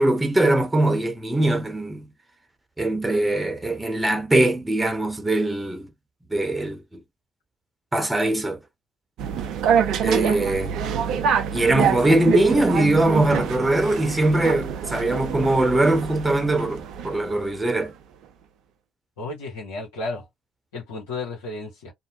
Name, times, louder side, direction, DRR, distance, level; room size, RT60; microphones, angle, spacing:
voice 1, 0.0-2.1 2.8-5.9 6.3-6.8 7.9-8.6 10.0-10.8 11.5-17.9, right 1 dB, 15° right, 0.8 m, -21 dB
sound 1, 9.2-17.5, right 7 dB, 60° right, 0.5 m, -25 dB
voice 2, 19.2-20.3 20.7-21.9, left 3 dB, 75° left, 1.0 m, -33 dB
2.7 x 2.1 x 2.8 m
figure-of-eight pair, 50°, 0 cm